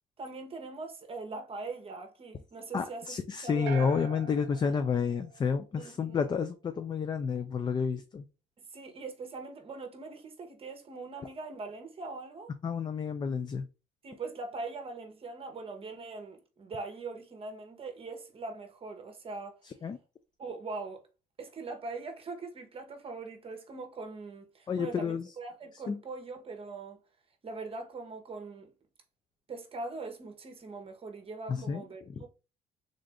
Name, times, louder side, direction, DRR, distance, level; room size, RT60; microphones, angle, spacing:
voice 1, 0.2-3.9 5.8-6.2 8.7-12.5 14.0-19.6 20.4-21.0 21.4-27.0 27.4-28.7 29.5-32.3, right 3 dB, 35° right, 0.9 m, -41 dB
voice 2, 2.7-8.3 12.6-13.7 19.6-20.0 24.7-25.3 25.9-26.0 31.5-31.8, left 6 dB, 25° left, 0.4 m, -30 dB
sound 1, 3.7-5.9, right 8 dB, 85° right, 0.7 m, -43 dB
3.7 x 2.5 x 3.3 m
cardioid pair, 110°, 17 cm